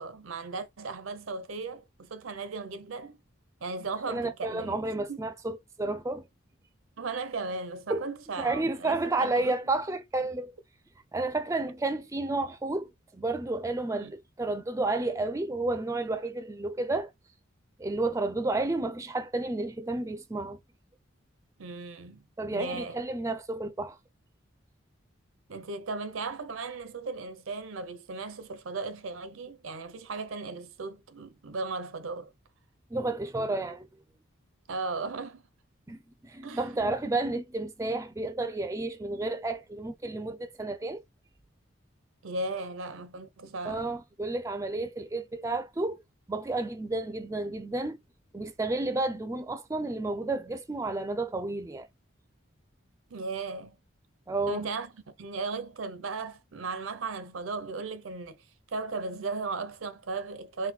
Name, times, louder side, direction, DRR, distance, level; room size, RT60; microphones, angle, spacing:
voice 1, 0.0-3.2 3.6-4.8 5.1-5.3 7.0-9.5 14.0-14.1 21.6-22.2 22.5-23.0 25.5-32.3 34.7-35.4 36.4-36.7 42.2-43.9 53.1-53.8 54.5-58.4 58.7-60.7, right 3 dB, 80° right, 0.6 m, -36 dB
voice 2, 4.1-6.2 7.9-8.0 8.4-10.5 11.1-17.1 17.8-20.6 22.4-24.0 32.9-33.9 35.9-36.0 36.2-41.0 43.6-46.0 46.3-48.0 48.3-51.9 54.3-54.6, right 2 dB, 15° right, 0.4 m, -31 dB
4.1 x 2.2 x 4.2 m
head